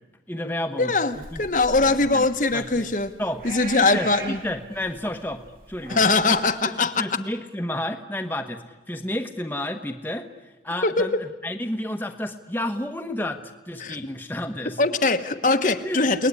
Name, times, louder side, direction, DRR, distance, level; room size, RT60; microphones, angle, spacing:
voice 1, 0.3-1.4 1.9-2.3 2.5-2.9 3.2-3.4 3.8-5.4 5.7-6.0 6.7-8.6 8.9-10.3 10.6-14.8 15.8-16.0, left 1 dB, 10° left, 5 dB, 1.2 m, -31 dB
voice 2, 0.8-3.1 3.4-4.4 5.9-7.1 10.8-11.1 13.8-14.0 14.8-16.3, left 3 dB, 45° left, 7 dB, 1.3 m, -21 dB
sound 1, 1.1-6.5, right 2 dB, 55° right, 3.5 m, -40 dB
30.0 x 19.5 x 9.9 m, 1.1 s
head